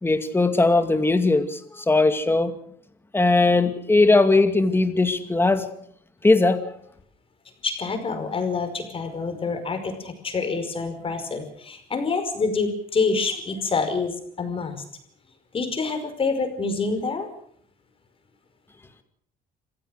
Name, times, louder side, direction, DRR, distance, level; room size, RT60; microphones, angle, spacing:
voice 1, 0.0-2.5 3.1-5.7 6.2-6.7, left 3 dB, 15° left, 8 dB, 2.3 m, -19 dB
voice 2, 7.6-14.8 15.5-17.3, left 4 dB, 35° left, 7 dB, 5.2 m, -27 dB
26.5 x 16.0 x 6.6 m, 0.64 s
cardioid pair, 110°, 17 cm